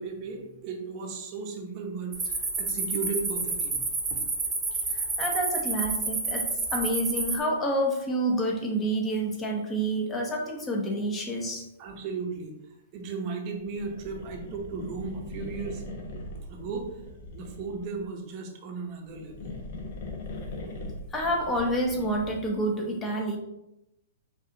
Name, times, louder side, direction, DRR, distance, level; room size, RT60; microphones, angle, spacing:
voice 1, 0.0-4.2 11.8-12.5 12.9-15.8 16.5-16.9 17.3-19.6, right 4 dB, 40° right, 1 dB, 0.9 m, -36 dB
sound 1, 2.1-7.4, right 3 dB, 15° right, 1.0 m, -30 dB
voice 2, 4.9-6.4 6.7-11.6 21.1-23.4, right 1 dB, 20° left, 1 dB, 0.9 m, -28 dB
sound 2, 13.6-18.0 19.0-22.6, left 2 dB, 60° left, 1.1 m, -40 dB
4.8 x 2.6 x 3.8 m, 0.86 s
hypercardioid pair, 130°, 0 cm